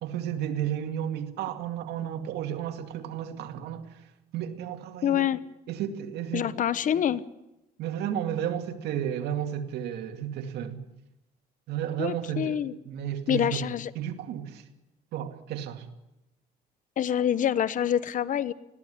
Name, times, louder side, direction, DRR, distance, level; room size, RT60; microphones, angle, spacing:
voice 1, 0.0-3.9 4.3-5.3 5.7-6.5 7.8-10.8 11.7-12.6 12.9-13.7 14.0-14.6 15.1-15.9, right 10 dB, 80° right, 2.3 m, -32 dB
voice 2, 5.0-5.4 6.3-7.2 12.0-12.7 13.3-13.9 17.0-18.5, left 10 dB, 50° left, 1.0 m, -26 dB
20.5 x 16.0 x 10.0 m
cardioid pair, 110°, 17 cm